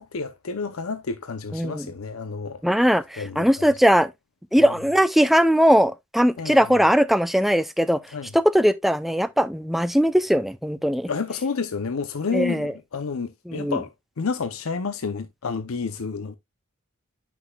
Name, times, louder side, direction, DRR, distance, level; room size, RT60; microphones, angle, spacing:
voice 1, 0.0-2.6 3.2-3.7 4.6-4.7 6.4-6.8 8.1-8.3 11.1-16.4, left 5 dB, 80° left, 0.6 m, -30 dB
voice 2, 1.5-1.8 2.6-4.1 4.5-8.0 8.3-11.1 12.3-12.7 13.5-13.8, equal, ahead, 0.4 m, -20 dB
9.8 x 6.1 x 2.3 m
head